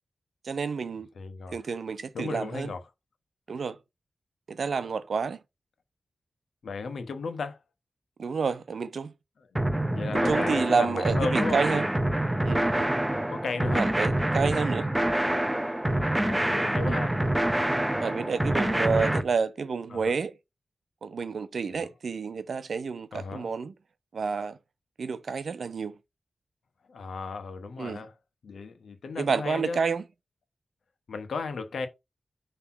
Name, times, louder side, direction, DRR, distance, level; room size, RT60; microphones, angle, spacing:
voice 1, 0.4-1.1 1.5-2.7 3.5-3.8 4.5-5.4 8.2-9.1 10.1-11.9 12.4-12.9 13.7-14.9 16.4-16.5 16.9-17.0 18.0-20.3 21.0-23.7 24.1-24.6 25.0-25.9 27.8-28.0 29.2-30.0, right 5 dB, 70° right, 0.7 m, -29 dB
voice 2, 1.2-1.6 2.1-2.8 6.6-7.6 9.4-9.5 9.9-11.6 13.3-13.8 15.9-17.1 18.7-19.2 19.9-20.2 21.7-21.9 23.1-23.5 26.9-28.1 28.4-29.8 31.1-31.9, left 4 dB, 85° left, 1.3 m, -35 dB
sound 1, 9.6-19.2, right 1 dB, 10° right, 0.7 m, -26 dB
6.0 x 3.3 x 5.7 m
wide cardioid pair, 120°, 0 cm